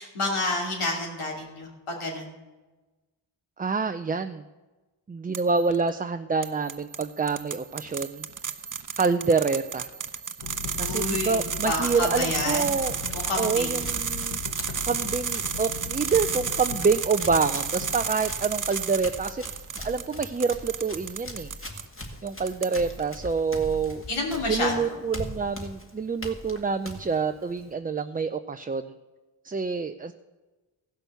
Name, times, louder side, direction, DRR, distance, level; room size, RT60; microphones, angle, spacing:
voice 1, 0.0-2.3 10.8-12.7 13.1-13.9 24.1-24.9, left 2 dB, 80° left, 0 dB, 3.0 m, -29 dB
voice 2, 3.6-4.4 5.1-8.3 9.0-9.9 10.8-12.9 13.4-14.4 14.9-19.4 19.8-21.5 22.2-24.0 24.5-28.9 29.4-30.1, right 5 dB, 20° right, 8 dB, 0.4 m, -27 dB
sound 1, 5.3-5.8 6.4-21.9 22.3-23.0, right 7 dB, 40° right, 0.8 m, -32 dB
sound 2, 10.4-19.7, left 5 dB, 55° left, 1.0 m, -39 dB
Run, 12.5-27.7, left 1 dB, 25° left, 2.1 m, -42 dB
15.5 x 6.2 x 6.8 m, 1.2 s
cardioid pair, 50°, 49 cm